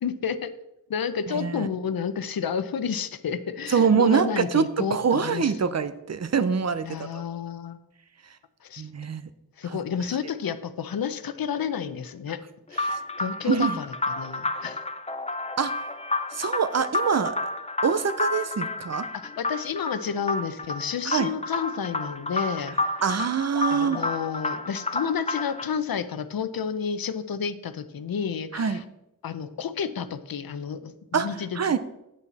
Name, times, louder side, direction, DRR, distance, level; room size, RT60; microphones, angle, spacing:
voice 1, 0.0-0.5 0.9-5.8 6.8-7.8 8.6-8.9 9.6-12.4 12.7-14.8 19.1-23.0 23.7-28.8 29.2-31.6, left 7 dB, 80° left, 12 dB, 0.7 m, -31 dB
voice 2, 1.3-1.7 3.7-4.7 4.9-6.9 7.1-7.2 8.8-9.3 12.8-13.0 13.4-13.8 15.6-15.7 16.3-17.4 17.8-19.1 21.1-21.3 23.0-24.0 28.5-28.8 31.1-31.3 31.6-31.8, right 6 dB, 50° right, 12 dB, 0.6 m, -24 dB
sound 1, 12.7-25.7, left 2 dB, 20° left, 0.5 m, -30 dB
8.8 x 8.3 x 4.1 m, 0.87 s
wide cardioid pair, 125°, 35 cm